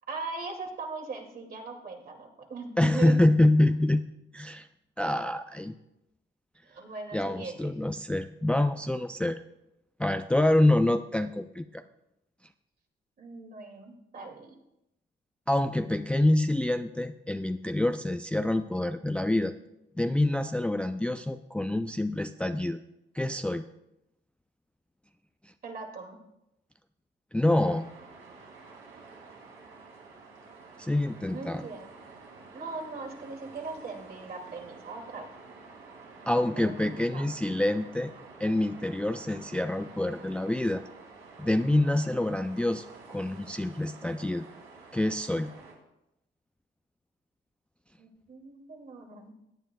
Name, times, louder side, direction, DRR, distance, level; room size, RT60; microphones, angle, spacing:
voice 1, 0.1-3.2 5.5-5.6 6.6-7.7 13.2-14.5 25.6-26.2 31.3-31.9 32.5-35.3 36.6-37.3 48.0-49.3, right 3 dB, 50° right, 2 dB, 2.3 m, -40 dB
voice 2, 2.8-4.0 4.3-4.7 5.0-5.7 7.1-9.4 10.0-11.8 15.5-19.5 20.0-22.8 23.1-23.6 27.3-27.9 30.8-31.6 36.3-38.1 38.4-40.8 41.4-44.5 44.9-45.5, left 1 dB, 5° left, 8 dB, 0.4 m, -26 dB
sound 1, 27.6-45.7, right 4 dB, 85° right, 2.9 m, -50 dB
16.5 x 9.4 x 2.3 m, 0.85 s
cardioid pair, 90°, 20 cm